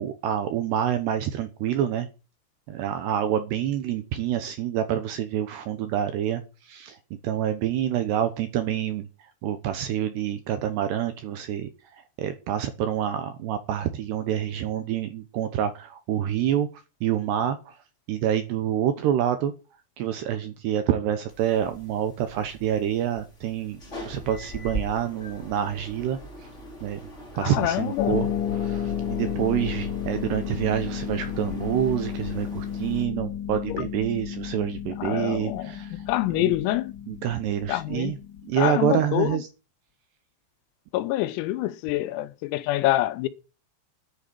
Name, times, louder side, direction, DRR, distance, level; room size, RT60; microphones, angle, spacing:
voice 1, 0.0-2.1 2.7-7.0 7.2-9.1 9.4-16.7 17.0-17.8 18.1-19.5 20.0-26.2 26.8-27.0 27.4-36.0 36.4-36.5 37.1-38.2 38.4-39.5, right 10 dB, 75° right, 2.6 m, -27 dB
sound 1, 21.3-33.0, right 1 dB, 25° left, 1.7 m, -41 dB
voice 2, 27.4-28.2 33.7-33.9 35.0-36.9 37.7-38.2 38.6-39.4 40.9-43.3, left 15 dB, 90° left, 3.7 m, -26 dB
Harp, 28.0-38.5, left 9 dB, 70° left, 3.3 m, -32 dB
10.5 x 7.8 x 9.6 m
omnidirectional pair, 6.0 m